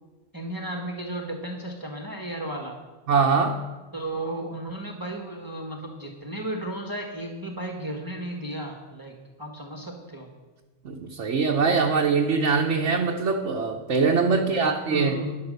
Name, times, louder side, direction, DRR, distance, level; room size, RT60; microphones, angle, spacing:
voice 1, 0.3-2.8 3.9-9.1 9.4-10.3 14.3-15.4, right 1 dB, 20° right, 1 dB, 1.6 m, -34 dB
voice 2, 3.1-3.6 10.8-15.1, right 5 dB, 80° right, 0 dB, 1.4 m, -23 dB
13.0 x 10.0 x 6.6 m, 1.2 s
omnidirectional pair, 1.2 m